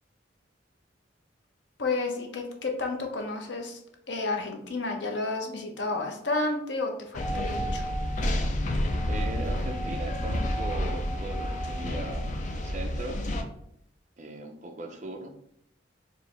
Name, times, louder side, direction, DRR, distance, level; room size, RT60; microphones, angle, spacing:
voice 1, 1.8-3.8 4.1-7.9, left 3 dB, 70° left, 3 dB, 0.7 m, -31 dB
sound 1, 7.1-13.4, equal, 40° left, 0.4 m, -29 dB
voice 2, 9.0-13.2 14.2-15.3, right 1 dB, 40° right, 4 dB, 0.5 m, -39 dB
4.5 x 2.7 x 3.3 m, 0.73 s
head